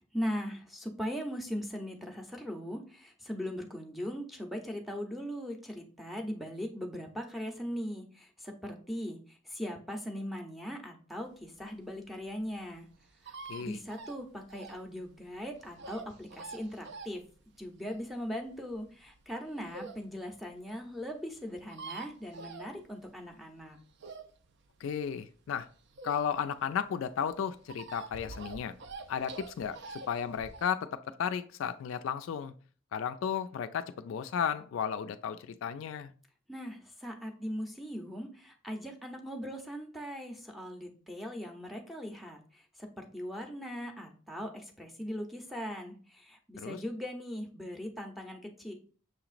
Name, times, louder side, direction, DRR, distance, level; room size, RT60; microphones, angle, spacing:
voice 1, 0.1-12.9 13.2-17.2 17.6-23.8 36.5-48.7, equal, ahead, 0.6 m, -39 dB
sound 1, 11.4-20.1 20.5-20.6 20.8-20.9 21.1-21.2 21.4-23.3 23.6-26.6 26.9-30.7, right 4 dB, 60° right, 0.5 m, -46 dB
voice 2, 24.8-25.7 26.0-28.7 29.1-32.5 32.9-36.1 46.6-46.8, left 7 dB, 70° left, 0.3 m, -34 dB
6.4 x 2.9 x 2.4 m
head